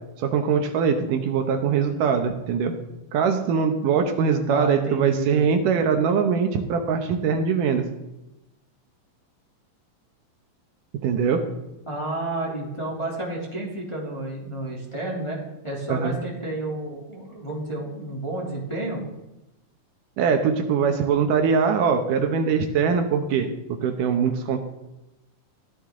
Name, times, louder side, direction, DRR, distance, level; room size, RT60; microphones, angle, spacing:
voice 1, 0.2-2.7 3.1-7.8 11.0-11.4 15.9-16.2 20.2-23.5 23.8-24.6, right 6 dB, 75° right, 6 dB, 2.5 m, -22 dB
voice 2, 1.7-2.1 4.5-5.5 11.9-19.0, right 1 dB, 10° left, -3 dB, 2.4 m, -31 dB
15.0 x 13.0 x 3.8 m, 0.95 s
omnidirectional pair, 4.0 m